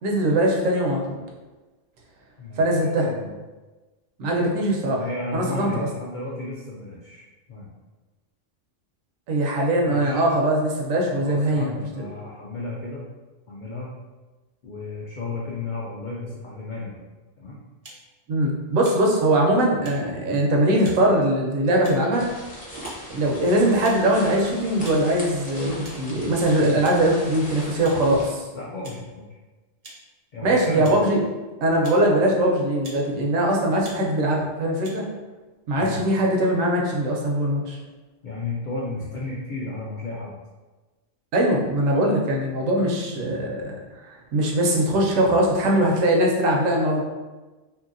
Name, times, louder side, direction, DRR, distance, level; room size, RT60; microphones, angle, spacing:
voice 1, 0.0-1.2 2.6-3.1 4.2-5.1 5.3-5.9 9.3-12.1 18.3-22.3 23.1-28.5 30.4-31.2 31.6-35.0 35.7-37.8 41.3-47.0, right 1 dB, 85° right, -1 dB, 1.0 m, -21 dB
voice 2, 3.0-3.3 4.4-4.6 4.9-7.2 7.5-7.7 9.9-10.2 11.2-13.1 13.5-13.9 14.6-17.0 17.4-17.6 19.7-20.0 28.5-29.3 30.3-31.0 35.8-36.0 38.2-40.4, left 2 dB, 75° left, -5 dB, 0.4 m, -33 dB
sound 1, 17.8-18.0 18.8-19.0 19.8-20.0 20.8-21.0 21.8-22.1 22.8-23.0 23.8-24.0 24.8-25.0 25.8-26.0 26.8-27.0 27.8-28.0 28.8-29.0 29.8-30.0 30.8-31.0 31.8-32.0 32.8-33.0 33.8-34.0 34.8-35.0, right 2 dB, 60° right, 0.3 m, -43 dB
sound 2, 22.2-28.3, equal, 10° left, 0.5 m, -39 dB
2.8 x 2.7 x 2.5 m, 1.2 s
omnidirectional pair, 1.3 m